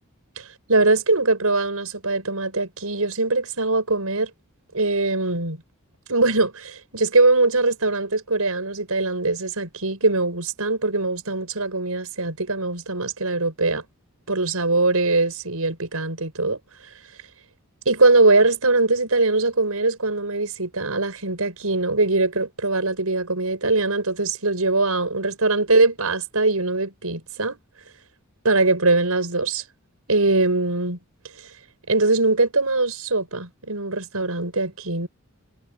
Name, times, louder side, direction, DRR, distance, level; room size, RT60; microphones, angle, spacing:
voice 1, 0.7-4.3 4.7-5.6 6.1-13.8 14.3-16.6 17.9-27.6 28.4-29.6 30.1-31.0 31.9-35.1, right 3 dB, 75° right, 5.8 m, -21 dB
head